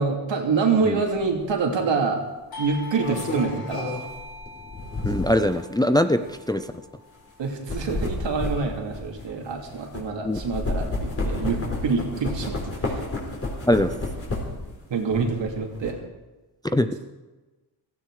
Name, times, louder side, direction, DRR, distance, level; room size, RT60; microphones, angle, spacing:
voice 1, 0.0-2.2 2.6-4.0 7.4-13.0 14.9-16.0, right 4 dB, 75° right, 2 dB, 2.8 m, -26 dB
sound 1, 1.2-1.4 2.7-5.5 6.2-6.4 7.4-10.0 10.3-14.7 15.1-15.9, left 2 dB, 30° left, 4.0 m, -30 dB
Doorbell, 2.5-7.8, left 2 dB, 50° left, 2.7 m, -42 dB
voice 2, 5.0-6.7 10.2-10.4 13.7-13.9 16.7-16.9, left 1 dB, 10° left, 9 dB, 0.5 m, -22 dB
16.5 x 16.0 x 4.9 m, 1.2 s
wide cardioid pair, 150°, 44 cm